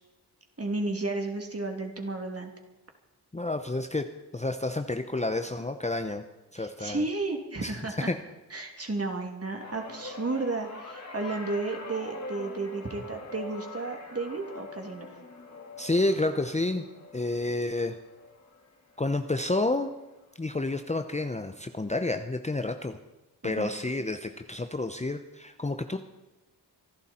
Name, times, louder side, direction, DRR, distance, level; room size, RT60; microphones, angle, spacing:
voice 1, 0.6-2.5 6.6-8.1 8.5-15.1 23.4-23.7, right 3 dB, 35° right, 3 dB, 2.8 m, -33 dB
voice 2, 3.3-6.2 6.5-7.0 7.6-7.8 8.1-8.2 15.8-16.9 17.1-18.0 19.0-19.9 20.4-23.0 23.4-26.0, left 2 dB, 15° left, 7 dB, 0.8 m, -30 dB
sound 1, 9.5-20.0 20.3-20.7 21.8-21.9, left 3 dB, 40° left, 2.4 m, -44 dB
25.5 x 12.0 x 4.4 m, 1.1 s
wide cardioid pair, 75°, 41 cm